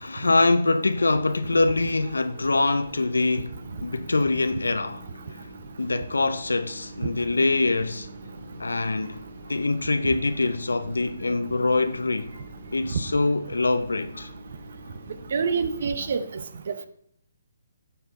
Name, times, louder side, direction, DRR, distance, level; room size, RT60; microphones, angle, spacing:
voice 1, 0.0-5.0 5.4-5.5 5.8-8.1 8.6-9.2 9.5-12.3 12.7-14.3, left 3 dB, 85° left, 0.5 m, -24 dB
sound 1, 1.1-16.1, right 1 dB, 85° right, 3.3 m, -44 dB
voice 2, 15.3-16.9, right 5 dB, 60° right, 0.8 m, -27 dB
11.0 x 6.0 x 4.1 m
figure-of-eight pair, 145°, 0 cm